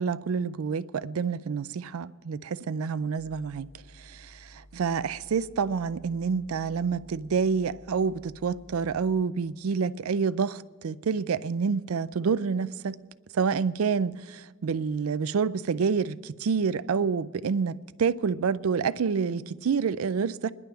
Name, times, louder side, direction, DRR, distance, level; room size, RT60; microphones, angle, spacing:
voice 1, 0.0-3.7 4.0-13.0 13.3-20.5, right 5 dB, 85° right, 0.4 m, -28 dB
sound 1, 3.2-9.3, equal, 10° left, 0.7 m, -53 dB
25.0 x 11.0 x 3.4 m
head